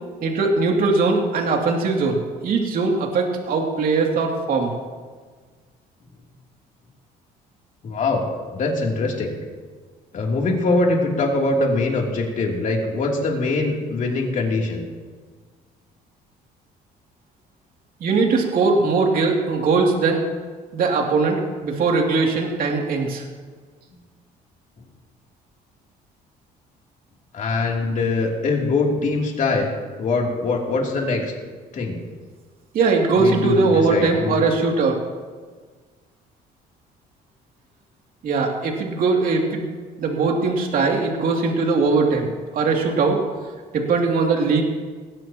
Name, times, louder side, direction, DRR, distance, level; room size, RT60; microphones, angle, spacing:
voice 1, 0.2-4.7 18.0-20.2 20.7-23.2 32.7-35.0 38.2-39.7 40.0-42.3 42.5-43.2 43.7-44.6, right 4 dB, 60° right, 0 dB, 2.8 m, -20 dB
voice 2, 7.8-9.3 10.1-14.8 27.3-29.7 30.0-31.3 31.7-32.0 33.2-34.4, left 3 dB, 50° left, -1 dB, 3.1 m, -22 dB
19.0 x 16.5 x 3.0 m, 1.5 s
cardioid pair, 110°, 17 cm